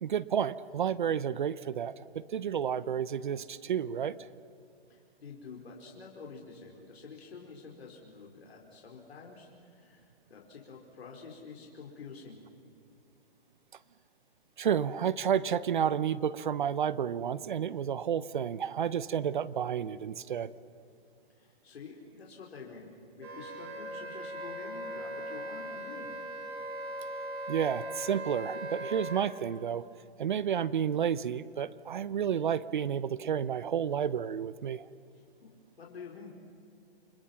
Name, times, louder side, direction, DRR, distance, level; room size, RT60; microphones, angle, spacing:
voice 1, 0.0-4.2 14.6-20.5 27.5-29.9 30.2-34.9, right 8 dB, 50° right, 17 dB, 0.7 m, -31 dB
voice 2, 4.9-12.4 21.4-22.9 23.2-26.1 35.1-35.5 35.8-36.3, left 4 dB, 85° left, -1 dB, 4.8 m, -48 dB
Wind instrument woodwind instrument, 23.2-29.2, right 1 dB, 85° right, 7.8 m, -39 dB
29.5 x 25.5 x 6.0 m, 2.5 s
hypercardioid pair, 170°, 31 cm